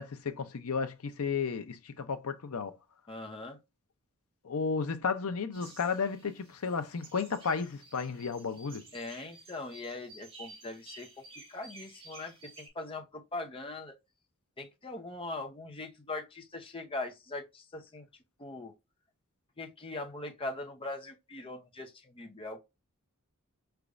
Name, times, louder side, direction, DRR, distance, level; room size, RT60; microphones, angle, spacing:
voice 1, 0.0-2.7 4.4-8.8, left 5 dB, 80° left, 0.6 m, -33 dB
voice 2, 3.1-3.6 8.9-11.2 11.5-13.9 14.6-18.1 18.4-18.7 19.6-22.6, left 2 dB, 25° left, 0.7 m, -41 dB
sound 1, 5.5-12.7, right 3 dB, 25° right, 1.7 m, -53 dB
5.0 x 3.4 x 2.5 m
head